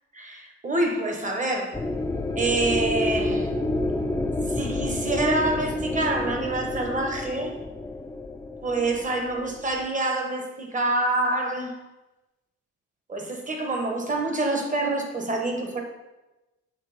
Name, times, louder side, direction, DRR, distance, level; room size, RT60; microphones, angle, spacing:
voice 1, 0.1-1.7 2.3-3.5 4.5-7.5 8.6-11.8 13.1-15.8, right 2 dB, 25° right, 2 dB, 1.2 m, -26 dB
sound 1, 1.7-9.8, left 2 dB, 10° left, 0.5 m, -29 dB
6.5 x 3.1 x 5.1 m, 1.0 s
cardioid pair, 90°, 30 cm